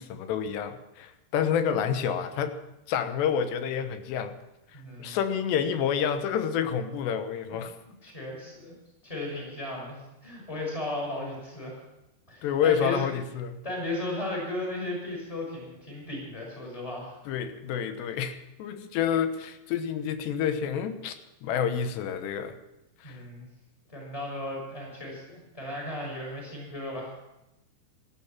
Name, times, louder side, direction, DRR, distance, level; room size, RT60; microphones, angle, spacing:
voice 1, 0.0-2.6 2.9-4.4 5.0-7.7 12.4-13.6 17.3-21.2 21.4-22.6 23.0-23.2, left 8 dB, 90° left, 9 dB, 3.3 m, -28 dB
voice 2, 4.7-5.2 7.5-7.6 8.0-8.7 9.0-11.8 12.3-13.1 13.6-17.2 23.0-23.5 23.9-27.1, left 1 dB, 5° left, -1 dB, 5.9 m, -35 dB
18.5 x 12.5 x 5.9 m, 0.92 s
omnidirectional pair, 4.8 m